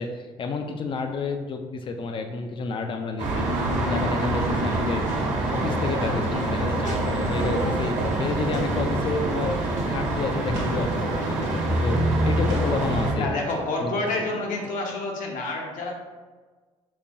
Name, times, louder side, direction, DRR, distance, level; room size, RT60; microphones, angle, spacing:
voice 1, 0.0-3.5 3.8-5.0 5.4-9.5 9.9-12.0 12.2-13.4 13.8-13.9, left 4 dB, 35° left, 5 dB, 0.4 m, -30 dB
sound 1, 3.2-13.1, right 1 dB, 60° right, 1.0 m, -25 dB
sound 2, 4.3-14.8, right 1 dB, 15° right, 0.6 m, -41 dB
sound 3, 10.5-14.2 14.6-14.7, right 1 dB, 85° right, 1.1 m, -38 dB
voice 2, 13.2-16.0, left 2 dB, 70° left, 0 dB, 0.8 m, -28 dB
5.4 x 2.2 x 2.6 m, 1.4 s
supercardioid pair, 85°, 14 cm